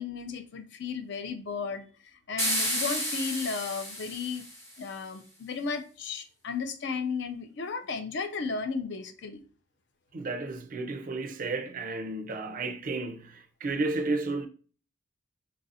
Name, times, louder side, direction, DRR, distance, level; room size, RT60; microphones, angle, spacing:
voice 1, 0.0-4.5 4.8-9.4, left 5 dB, 55° left, 0.4 m, -34 dB
sound 1, 2.4-4.8, equal, 15° left, 0.8 m, -31 dB
voice 2, 10.1-14.5, right 3 dB, 40° right, 0.4 m, -32 dB
4.0 x 2.4 x 2.7 m
head